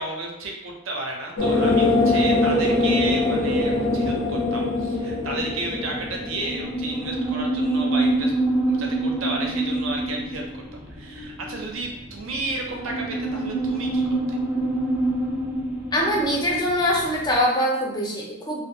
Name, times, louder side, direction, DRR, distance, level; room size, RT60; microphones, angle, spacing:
voice 1, 0.0-8.3 8.7-14.0 14.3-14.4, right 2 dB, 60° right, 1 dB, 0.6 m, -32 dB
sound 1, 1.4-7.7, left 2 dB, 90° left, 0.7 m, -23 dB
sound 2, 3.3-17.4, right 2 dB, 15° right, 0.7 m, -28 dB
voice 2, 15.9-18.6, equal, 20° left, -2 dB, 0.4 m, -23 dB
2.6 x 2.3 x 2.7 m, 0.88 s
head